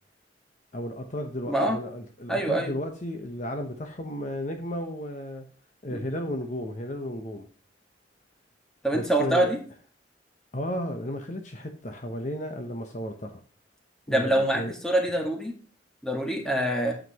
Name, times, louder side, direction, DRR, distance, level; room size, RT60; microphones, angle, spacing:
voice 1, 0.7-5.4 5.8-7.5 8.9-9.5 10.5-13.4 14.1-14.7, equal, 40° left, 5 dB, 1.0 m, -34 dB
voice 2, 1.5-1.8 2.3-2.7 5.9-6.0 8.8-9.6 14.1-15.5 16.0-16.9, right 1 dB, 5° left, 1 dB, 1.8 m, -25 dB
9.4 x 7.6 x 2.9 m, 0.40 s
head